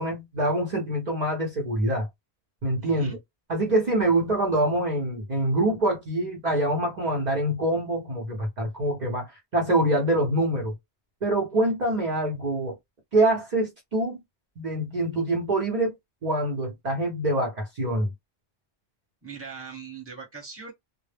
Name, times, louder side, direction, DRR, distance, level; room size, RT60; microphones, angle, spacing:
voice 1, 0.0-2.1 2.6-3.2 3.5-10.7 11.2-12.7 13.1-14.2 14.6-15.9 16.2-18.1, right 1 dB, 50° right, 0.7 m, -25 dB
voice 2, 2.8-3.2 19.2-20.7, right 5 dB, 15° right, 0.9 m, -40 dB
2.0 x 2.0 x 3.2 m
omnidirectional pair, 1.1 m